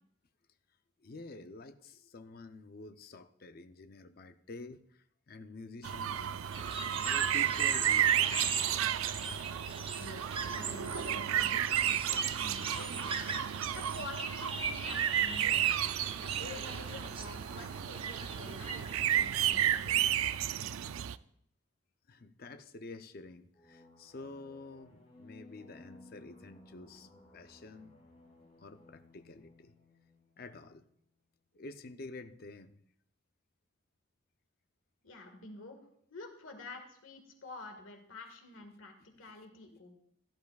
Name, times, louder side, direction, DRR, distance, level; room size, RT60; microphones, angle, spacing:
voice 1, 1.0-6.7 7.0-9.1 12.1-12.4 22.1-27.1 27.3-28.0 28.6-29.7 30.4-30.8 31.5-32.8, left 3 dB, 45° left, 8 dB, 0.5 m, -49 dB
sound 1, 5.8-21.2, right 11 dB, 90° right, 0.4 m, -32 dB
sound 2, 6.5-19.8, right 5 dB, 25° right, 0.7 m, -40 dB
voice 2, 9.9-13.1 13.7-15.8 16.2-20.1 20.4-20.9 35.0-35.8 36.1-39.9, left 2 dB, 75° left, 4 dB, 1.7 m, -49 dB
sound 3, 23.5-30.9, left 2 dB, 30° left, 2.7 m, -58 dB
16.5 x 12.0 x 2.4 m, 0.68 s
head